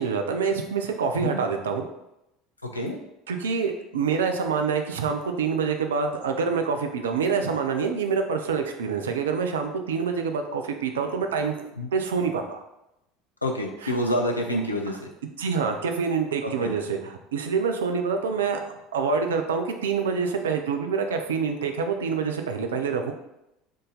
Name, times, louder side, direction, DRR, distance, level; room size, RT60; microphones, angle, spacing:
voice 1, 0.0-1.8 3.3-12.6 13.8-14.0 14.9-15.0 15.4-18.6 18.9-23.1, right 5 dB, 70° right, 5 dB, 0.4 m, -26 dB
voice 2, 13.4-15.1 16.4-16.7, equal, 85° left, 2 dB, 0.5 m, -27 dB
3.7 x 2.6 x 3.8 m, 0.88 s
figure-of-eight pair, 65°, 0 cm